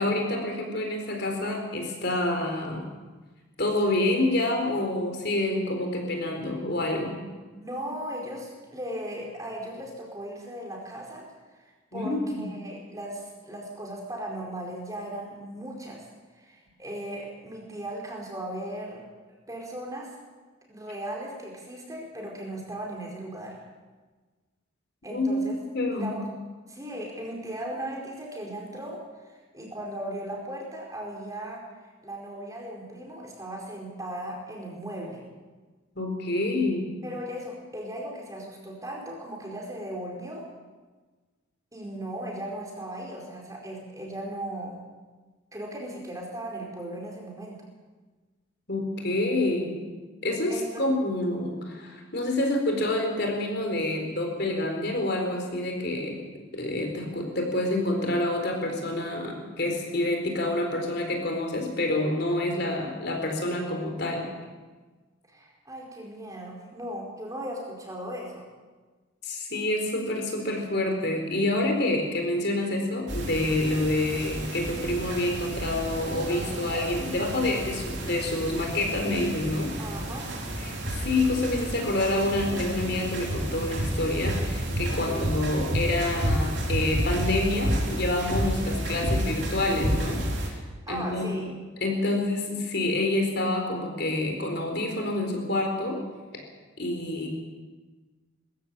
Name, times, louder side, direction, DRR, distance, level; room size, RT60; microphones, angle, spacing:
voice 1, 0.0-2.9 3.6-7.2 11.9-12.5 25.1-26.1 36.0-36.9 48.7-49.9 50.2-56.2 56.5-64.3 69.2-79.7 80.6-90.6 90.9-91.5 91.8-96.0 96.3-96.4 96.8-97.3, left 2 dB, 50° left, 2 dB, 4.1 m, -27 dB
voice 2, 7.5-16.1 16.3-19.0 19.5-20.1 20.7-23.6 25.0-25.5 25.9-26.3 26.7-35.2 37.0-40.4 41.7-44.8 45.5-47.6 50.5-50.9 65.3-68.5 79.8-80.3 85.1-85.2 90.9-91.5, right 1 dB, 15° right, -1 dB, 4.7 m, -37 dB
sound 1, 73.1-90.5, right 1 dB, 55° right, 4.3 m, -31 dB
21.5 x 15.0 x 8.8 m, 1.3 s
head